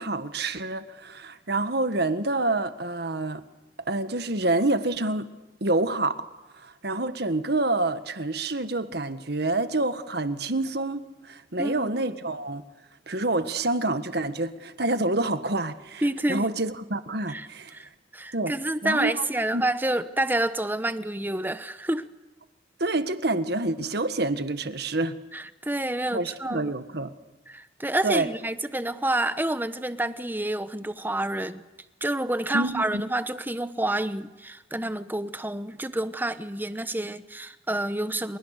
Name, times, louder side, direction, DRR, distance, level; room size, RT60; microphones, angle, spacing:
voice 1, 0.0-3.4 3.9-5.3 5.6-6.2 6.5-12.6 13.1-17.7 18.3-18.5 18.8-19.3 19.5-19.6 22.8-25.2 26.1-27.1 28.0-28.3 32.5-33.0, right 2 dB, 55° right, 1.6 m, -27 dB
voice 2, 11.6-11.9 16.0-16.5 17.3-17.5 17.7-22.1 25.3-26.7 27.5-31.6 32.0-38.4, right 1 dB, 10° right, 1.0 m, -28 dB
30.0 x 28.5 x 6.7 m
head